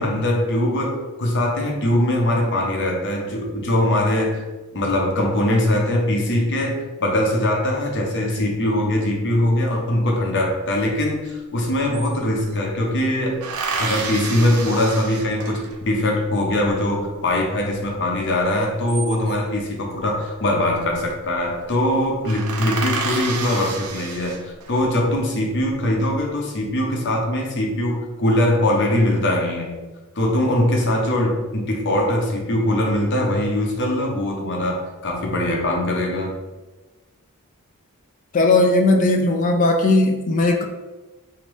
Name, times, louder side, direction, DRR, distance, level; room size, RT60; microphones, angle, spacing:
voice 1, 0.0-4.4 4.7-13.4 13.8-29.8 30.1-36.4, left 1 dB, 55° left, 0 dB, 0.7 m, -21 dB
sound 1, 11.3-11.4 11.6-12.7 13.4-15.9 18.6-19.6 20.7-21.1 21.4-21.6 21.9-22.0 22.2-24.8 25.4-26.0, right 4 dB, 75° right, 0.4 m, -30 dB
voice 2, 38.3-40.7, left 2 dB, 35° left, 4 dB, 0.3 m, -17 dB
3.0 x 2.8 x 3.2 m, 1.2 s
head